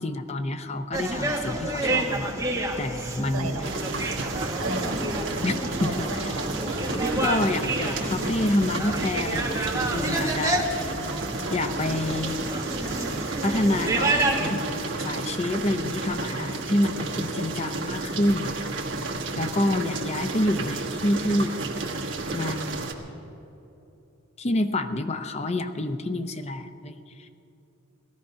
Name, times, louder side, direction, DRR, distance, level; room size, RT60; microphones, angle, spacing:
voice 1, 0.0-2.3 2.8-3.6 5.4-5.5 5.8-6.3 7.2-10.9 11.5-12.4 13.4-18.6 19.4-21.6 22.3-22.9 24.4-27.3, left 1 dB, 30° left, 9 dB, 0.6 m, -28 dB
sound 1, 0.9-14.6, right 2 dB, 15° right, 1.4 m, -29 dB
voice 2, 3.3-3.7 4.6-5.0 5.3-6.0 6.3-6.6 11.0-11.4 19.6-19.8, right 2 dB, 90° right, 4 dB, 1.5 m, -35 dB
sound 2, 3.6-22.9, right 2 dB, 60° right, 1.5 m, -32 dB
sound 3, 6.9-14.1, left 2 dB, 75° left, 1.3 m, -44 dB
18.0 x 13.5 x 5.7 m, 2.9 s
head